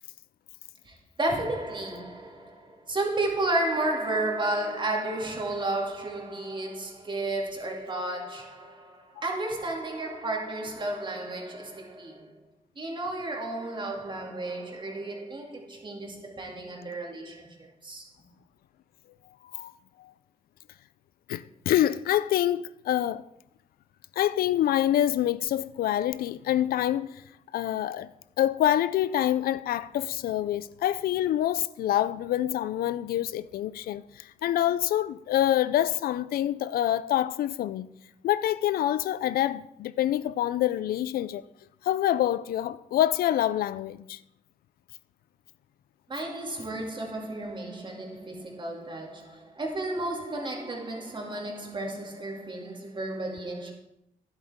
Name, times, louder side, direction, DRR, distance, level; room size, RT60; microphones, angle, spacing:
voice 1, 0.8-12.4 12.8-18.1 46.1-53.7, right 2 dB, 30° right, 2.4 m, -32 dB
voice 2, 21.3-23.2 24.2-27.2 27.5-28.1 28.4-37.9 38.2-41.4 41.8-44.2, left 12 dB, 85° left, 0.4 m, -26 dB
12.0 x 10.5 x 3.6 m
cardioid pair, 105°, 15 cm